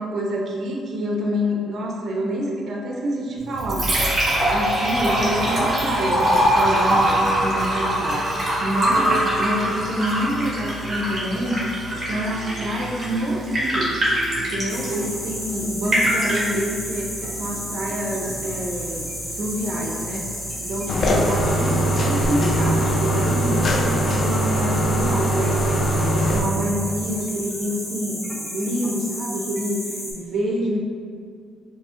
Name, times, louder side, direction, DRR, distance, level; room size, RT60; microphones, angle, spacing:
voice 1, 0.0-4.0 4.5-8.2 8.6-11.6 11.9-13.9 14.4-20.3 20.6-25.6 26.1-28.2 28.5-30.8, equal, 60° right, -1 dB, 0.6 m, -27 dB
Liquid, 3.4-22.4, equal, 30° right, 1.4 m, -24 dB
sound 1, 14.7-30.1, equal, 5° left, 1.2 m, -32 dB
sound 2, 20.9-26.4, right 1 dB, 55° left, 0.5 m, -21 dB
5.3 x 2.8 x 2.5 m, 2.2 s
cardioid pair, 90°, 0 cm